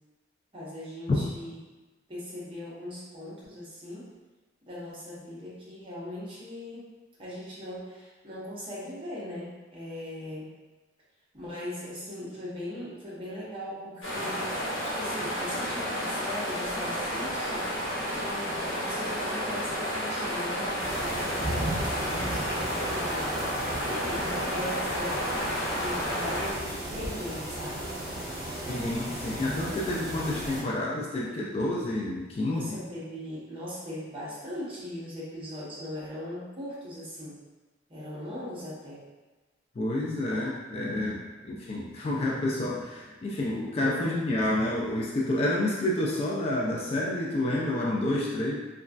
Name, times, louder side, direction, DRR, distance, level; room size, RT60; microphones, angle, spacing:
voice 1, 0.5-1.6 2.1-4.1 4.7-6.8 7.2-10.5 11.3-17.7 18.1-23.3 23.9-27.9 32.5-37.4 37.9-39.0 43.9-44.2, left 1 dB, 30° right, -8 dB, 0.9 m, -39 dB
sound 1, 14.0-26.5, equal, 80° left, 0.8 m, -31 dB
sound 2, 20.8-30.6, right 1 dB, 50° right, 1.2 m, -35 dB
voice 2, 28.7-32.7 39.8-48.5, left 1 dB, 30° left, -4 dB, 0.3 m, -29 dB
3.0 x 2.3 x 2.4 m, 1.2 s
head